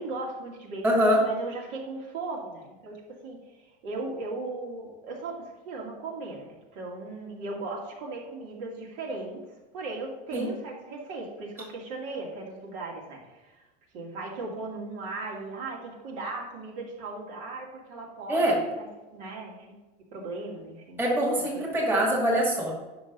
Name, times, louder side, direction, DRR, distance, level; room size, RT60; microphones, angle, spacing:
voice 1, 0.0-9.4 9.7-13.6 13.9-18.9 19.1-19.7 20.1-21.0 21.3-21.6, right 3 dB, 55° right, -2 dB, 2.4 m, -37 dB
voice 2, 0.8-1.3 10.3-10.5 18.3-18.6 21.0-22.7, equal, 10° right, -5 dB, 2.2 m, -23 dB
9.9 x 6.5 x 4.0 m, 1.1 s
supercardioid pair, 165°, 21 cm